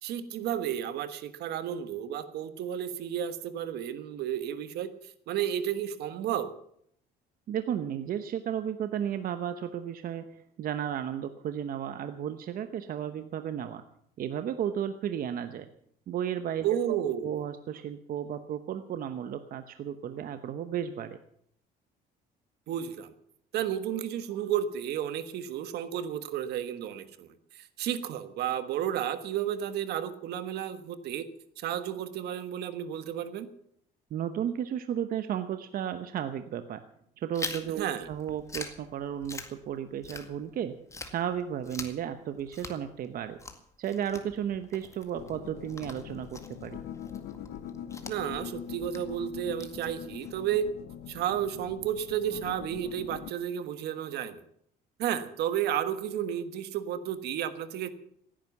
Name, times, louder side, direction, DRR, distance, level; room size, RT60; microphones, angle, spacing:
voice 1, 0.0-6.5 16.6-17.4 22.7-23.1 23.5-31.3 31.6-33.5 37.8-38.1 48.1-50.7 51.1-54.4 55.0-57.9, right 10 dB, 75° right, 11 dB, 1.4 m, -32 dB
voice 2, 7.5-13.8 14.2-15.7 16.1-17.0 17.2-21.2 34.1-36.8 37.2-40.8 41.0-43.4 43.8-46.8, right 9 dB, 60° right, 9 dB, 0.9 m, -34 dB
Chewing mastication, 37.3-40.6 40.9-50.3, left 3 dB, 15° left, 2.0 m, -44 dB
sound 1, 45.1-53.3, left 9 dB, 75° left, 0.9 m, -43 dB
16.5 x 10.0 x 7.2 m, 0.69 s
cardioid pair, 110°, 17 cm